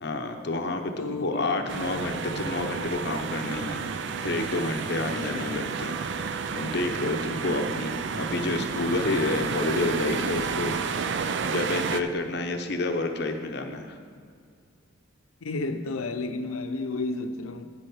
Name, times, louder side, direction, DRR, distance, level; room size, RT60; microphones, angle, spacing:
voice 1, 0.0-3.9 4.2-11.1 11.4-14.0, left 2 dB, 50° left, 0.7 m, -29 dB
voice 2, 1.0-1.9 5.3-5.4 7.4-7.5 15.4-17.6, left 3 dB, 90° left, 0.6 m, -32 dB
sound 1, 1.6-11.1, right 3 dB, 80° right, 2.2 m, -47 dB
sound 2, 1.7-12.0, right 5 dB, 55° right, 0.4 m, -31 dB
10.0 x 7.8 x 4.7 m
head